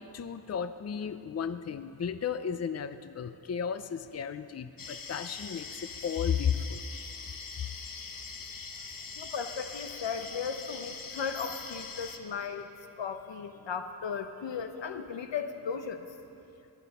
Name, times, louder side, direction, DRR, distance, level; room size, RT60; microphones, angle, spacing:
voice 1, 0.0-6.8, left 7 dB, 35° left, 12 dB, 0.5 m, -34 dB
sound 1, 4.8-12.2, left 5 dB, 50° left, 1.0 m, -43 dB
voice 2, 9.2-12.7 13.0-16.0, left 6 dB, 85° left, 8 dB, 0.9 m, -36 dB
22.0 x 9.4 x 5.5 m, 2.8 s
wide cardioid pair, 80°, 42 cm